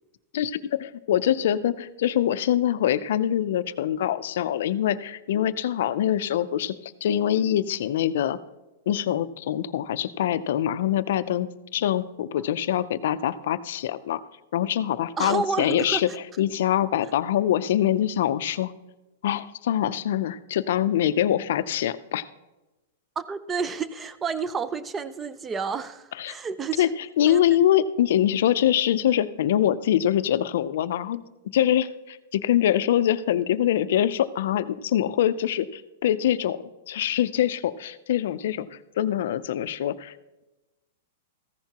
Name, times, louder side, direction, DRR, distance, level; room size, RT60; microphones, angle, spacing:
voice 1, 0.3-8.4 8.9-11.5 11.7-14.2 14.5-16.1 16.4-18.7 19.2-22.3 26.2-26.3 26.8-26.9 27.2-31.2 31.5-36.6 36.9-38.7 39.0-40.1, left 11 dB, 55° left, 13 dB, 0.4 m, -24 dB
voice 2, 15.2-16.0 23.2-26.9 27.3-27.4, right 5 dB, 10° right, 15 dB, 0.3 m, -30 dB
14.5 x 10.5 x 2.9 m, 1.0 s
supercardioid pair, 180°, 0 cm